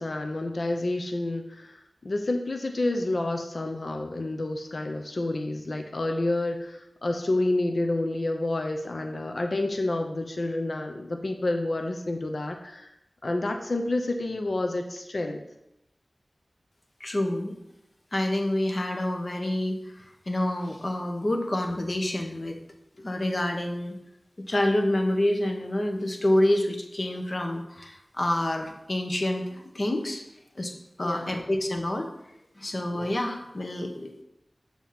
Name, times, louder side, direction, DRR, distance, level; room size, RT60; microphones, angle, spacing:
voice 1, 0.0-12.9 13.2-15.4 31.0-31.4, left 2 dB, 70° left, 4 dB, 0.6 m, -29 dB
voice 2, 17.0-17.5 18.1-22.6 23.0-24.0 24.5-30.2 30.5-30.7 31.0-32.1 32.6-34.2, left 1 dB, 50° left, 4 dB, 1.0 m, -27 dB
7.1 x 2.9 x 5.7 m, 0.85 s
wide cardioid pair, 45°, 0 cm